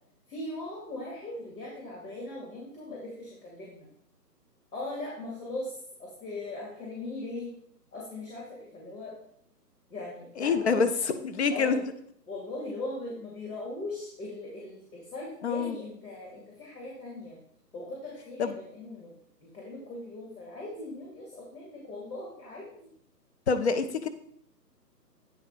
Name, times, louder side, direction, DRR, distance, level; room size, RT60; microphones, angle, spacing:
voice 1, 0.3-3.9 4.7-7.5 7.9-9.1 9.9-10.9 11.5-11.8 12.3-17.4 17.7-19.1 19.4-22.9, left 2 dB, 60° left, -4 dB, 2.7 m, -39 dB
voice 2, 10.4-11.8 15.4-15.7 18.4-18.5 23.5-24.1, left 5 dB, 40° left, 9 dB, 0.6 m, -26 dB
9.3 x 3.9 x 4.6 m, 0.67 s
figure-of-eight pair, 145°, 50 cm